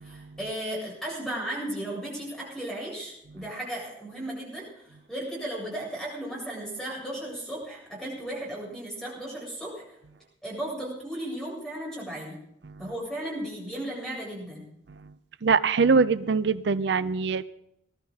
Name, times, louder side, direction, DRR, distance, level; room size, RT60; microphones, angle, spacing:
voice 1, 0.0-10.0 10.4-12.4 12.8-14.7, right 1 dB, 5° left, -4 dB, 7.8 m, -35 dB
voice 2, 15.4-17.4, right 5 dB, 65° right, 15 dB, 0.5 m, -22 dB
21.0 x 13.0 x 4.0 m, 0.80 s
head